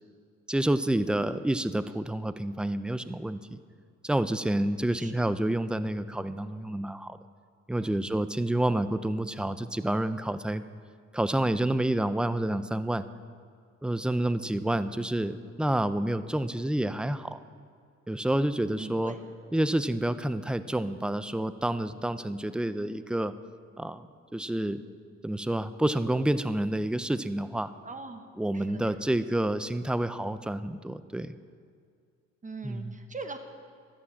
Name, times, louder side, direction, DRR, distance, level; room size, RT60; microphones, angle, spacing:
voice 1, 0.5-3.6 4.0-7.2 7.7-10.6 11.1-13.0 13.8-17.4 18.1-19.1 19.5-23.3 23.8-24.1 24.3-24.8 25.2-27.7 28.4-31.4 32.6-32.9, right 1 dB, 5° right, 13 dB, 0.4 m, -29 dB
voice 2, 18.8-19.2 27.8-28.2 28.7-29.1 32.4-33.4, right 3 dB, 25° right, 7 dB, 1.2 m, -41 dB
12.0 x 8.7 x 7.1 m, 2.2 s
cardioid pair, 90°, 30 cm